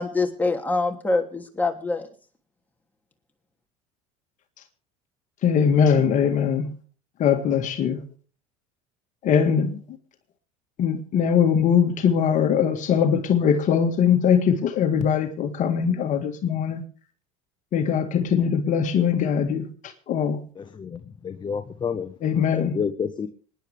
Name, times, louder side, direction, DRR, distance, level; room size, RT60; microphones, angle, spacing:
voice 1, 0.0-2.1, left 3 dB, 10° left, 3.1 m, -25 dB
voice 2, 5.4-6.7 7.2-8.0 9.2-9.8 10.8-16.8 17.7-19.7 20.1-20.4 22.2-22.8, left 7 dB, 50° left, 1.9 m, -21 dB
voice 3, 20.5-22.1 22.5-23.3, left 6 dB, 30° left, 1.2 m, -30 dB
26.5 x 10.5 x 3.6 m
hypercardioid pair, 80°, 17 cm